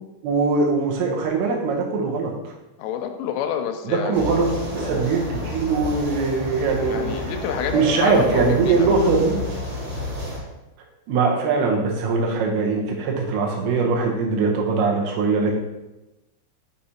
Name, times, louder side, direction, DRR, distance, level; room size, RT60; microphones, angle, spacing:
voice 1, 0.2-2.5 3.9-7.1 7.7-9.4 11.1-15.6, right 4 dB, 75° right, 0 dB, 2.9 m, -21 dB
voice 2, 2.8-4.3 6.9-8.9, left 8 dB, 85° left, 6 dB, 3.1 m, -28 dB
sound 1, 4.1-10.4, left 1 dB, 50° right, 1.9 m, -30 dB
6.4 x 5.8 x 2.8 m, 1.0 s
omnidirectional pair, 5.7 m